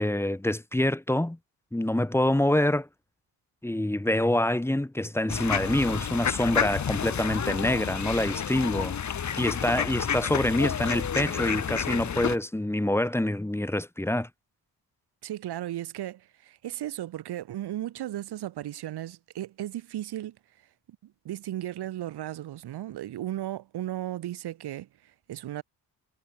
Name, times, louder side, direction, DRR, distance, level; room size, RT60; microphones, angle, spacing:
voice 1, 0.0-1.4 1.7-2.9 3.6-8.9 9.4-14.3, left 1 dB, 5° left, 2.7 m, -26 dB
sound 1, 5.3-12.4, left 8 dB, 45° left, 7.3 m, -30 dB
voice 2, 15.2-20.4 21.0-25.6, right 13 dB, 85° right, 4.1 m, -35 dB
cardioid pair, 150°, 38 cm